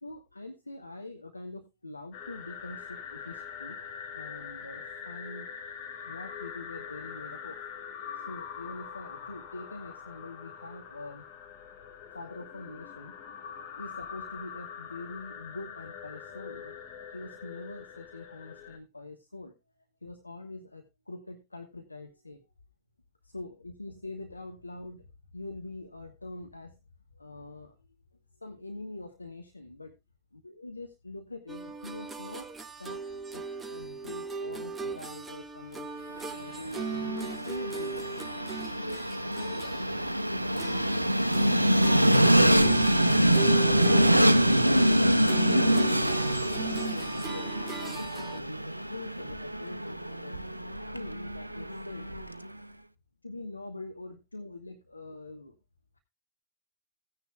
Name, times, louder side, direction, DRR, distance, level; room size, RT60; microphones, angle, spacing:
voice 1, 0.0-3.8 4.1-5.5 6.1-7.6 8.1-11.2 12.1-13.2 13.8-16.8 17.1-19.5 20.0-22.4 23.2-26.8 27.1-27.8 28.3-29.9 30.3-32.5 32.8-33.0 33.3-35.9 36.3-38.2 38.7-40.5 46.6-50.4 50.9-52.1 53.2-55.6, left 2 dB, 85° left, 5 dB, 1.3 m, -44 dB
sound 1, 2.1-18.8, left 7 dB, 45° left, 2.9 m, -43 dB
sound 2, 31.5-41.1 41.3-48.4, right 5 dB, 15° right, 1.0 m, -39 dB
Train, 36.4-52.5, equal, 85° right, 0.6 m, -25 dB
16.0 x 9.7 x 2.3 m, 0.23 s
figure-of-eight pair, 90°, 0 cm